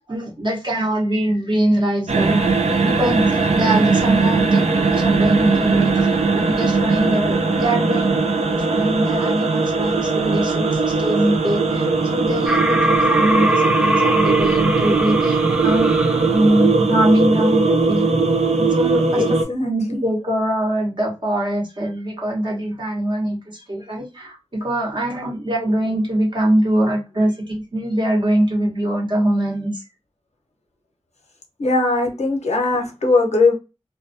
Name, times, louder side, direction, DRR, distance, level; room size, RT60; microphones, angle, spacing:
voice 1, 0.1-2.4 2.8-8.2 8.5-11.8 12.1-15.9 16.3-18.1 18.6-19.2 19.6-23.4 23.7-29.7, right 1 dB, 45° right, 0.9 m, -22 dB
sound 1, 2.1-19.4, right 4 dB, 75° right, 0.4 m, -19 dB
sound 2, 12.5-16.7, equal, 10° right, 0.4 m, -22 dB
voice 2, 15.6-16.2 17.7-17.9 19.1-20.0 31.6-33.5, left 3 dB, 80° left, 0.7 m, -21 dB
2.2 x 2.2 x 2.5 m
wide cardioid pair, 65°, 11 cm